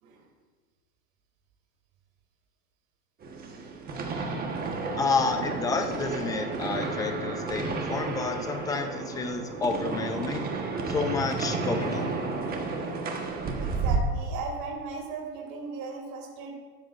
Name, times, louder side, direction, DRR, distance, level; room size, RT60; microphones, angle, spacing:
sound 1, 3.2-14.0, right 4 dB, 20° right, 1.2 m, -32 dB
voice 1, 5.0-10.5 10.9-12.1, left 4 dB, 10° left, 6 dB, 0.4 m, -30 dB
voice 2, 13.6-16.6, right 4 dB, 45° right, -1 dB, 3.0 m, -37 dB
15.0 x 13.0 x 2.5 m, 1.5 s
supercardioid pair, 145°, 47 cm